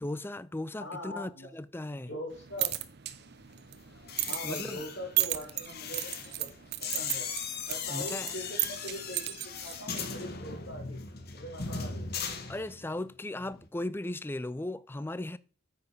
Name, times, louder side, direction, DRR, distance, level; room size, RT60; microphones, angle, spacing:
voice 1, 0.0-2.1 4.4-4.8 7.9-8.3 12.5-15.4, left 1 dB, 10° left, 0.4 m, -37 dB
voice 2, 0.8-1.5 1.8-2.7 4.3-6.5 6.8-7.3 7.6-11.0 11.3-12.4, equal, 75° left, 4.7 m, -42 dB
sound 1, 2.3-10.3, right 15 dB, 55° right, 0.8 m, -36 dB
sound 2, 4.0-13.1 13.3-13.7, left 6 dB, 50° left, 1.4 m, -38 dB
9.4 x 7.2 x 5.0 m
head